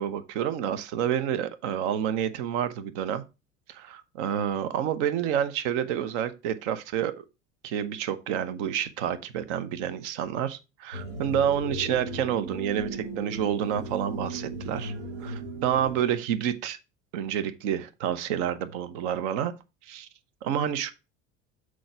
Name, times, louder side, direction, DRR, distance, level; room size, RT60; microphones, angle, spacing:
voice 1, 0.0-3.2 3.7-7.1 7.6-14.9 15.2-16.8 17.1-19.5 19.9-20.1 20.4-20.9, right 9 dB, 60° right, 0.9 m, -29 dB
sound 1, 10.9-16.0, right 2 dB, 80° right, 1.5 m, -36 dB
6.3 x 4.7 x 5.7 m
figure-of-eight pair, 70°, 39 cm